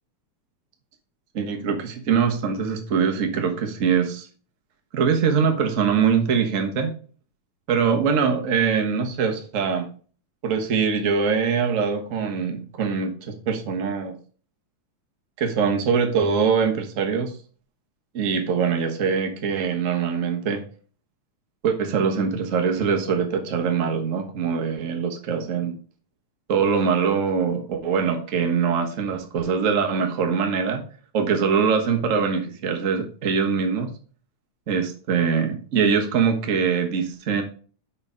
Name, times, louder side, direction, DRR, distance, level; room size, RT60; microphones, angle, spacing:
voice 1, 1.3-4.3 4.9-6.9 7.7-9.9 10.4-14.1 15.4-17.4 18.1-20.6 21.6-25.8 26.5-30.8 31.1-33.9 34.7-37.4, right 6 dB, 80° right, 3 dB, 0.7 m, -23 dB
6.8 x 5.6 x 5.0 m, 0.41 s
omnidirectional pair, 3.4 m